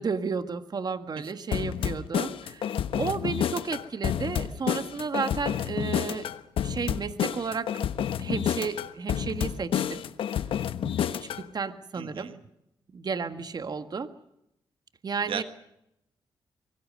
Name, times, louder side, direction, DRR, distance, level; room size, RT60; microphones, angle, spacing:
voice 1, 0.0-2.7 3.0-6.3 6.6-7.9 8.2-10.0 10.3-10.4 11.0-12.3 12.9-14.1 15.0-15.4, right 5 dB, 50° right, 10 dB, 1.6 m, -32 dB
sound 1, 1.5-11.4, left 9 dB, 80° left, 1.1 m, -29 dB
voice 2, 11.9-12.4 15.3-15.4, right 8 dB, 80° right, 10 dB, 1.6 m, -35 dB
24.5 x 21.5 x 6.5 m, 0.82 s
cardioid pair, 70°, 9 cm